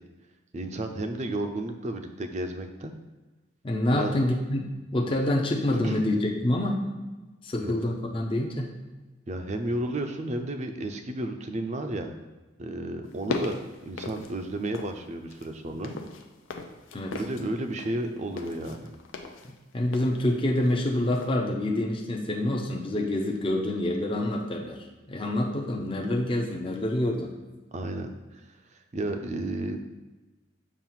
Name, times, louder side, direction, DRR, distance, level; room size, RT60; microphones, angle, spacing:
voice 1, 0.5-2.9 3.9-4.3 5.8-6.0 7.6-7.7 9.3-12.2 12.6-16.0 17.1-18.9 27.7-29.8, right 1 dB, 35° right, 6 dB, 0.5 m, -32 dB
voice 2, 3.6-6.8 7.4-8.7 16.9-17.1 19.4-27.3, left 1 dB, 25° left, 0 dB, 0.6 m, -27 dB
sound 1, 13.1-15.0 15.3-20.9 21.1-21.4, left 3 dB, 80° left, 0.6 m, -38 dB
7.1 x 2.5 x 5.7 m, 1.2 s
head